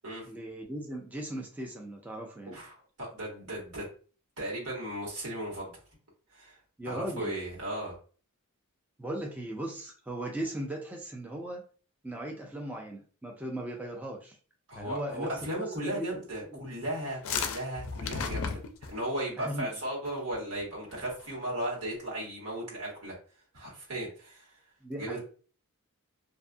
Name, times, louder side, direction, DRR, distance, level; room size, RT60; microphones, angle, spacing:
voice 1, 0.3-2.6 6.8-7.3 9.0-11.6 12.0-14.4 14.8-15.3 15.6-16.6 19.4-19.7 24.8-25.2, right 1 dB, 5° right, 0 dB, 0.3 m, -38 dB
voice 2, 2.5-3.9 4.4-5.8 6.3-6.6 6.8-8.0 14.7-18.6 18.9-23.2 23.5-24.6 25.0-25.2, right 1 dB, 75° right, -3 dB, 1.4 m, -36 dB
sound 1, 17.0-19.0 20.0-20.4 20.6-20.7 20.9-21.3, left 5 dB, 65° left, 0.4 m, -34 dB
2.6 x 2.4 x 2.4 m, 0.40 s
head